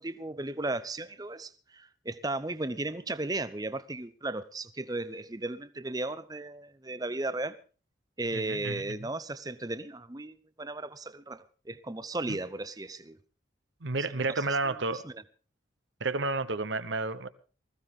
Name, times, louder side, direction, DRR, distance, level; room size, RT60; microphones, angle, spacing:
voice 1, 0.0-7.6 8.2-13.2 14.4-15.2, right 2 dB, 20° right, 0.7 m, -36 dB
voice 2, 8.3-9.1 12.3-12.4 13.8-15.0 16.0-17.3, right 3 dB, 70° right, 1.0 m, -31 dB
20.5 x 15.5 x 3.7 m
head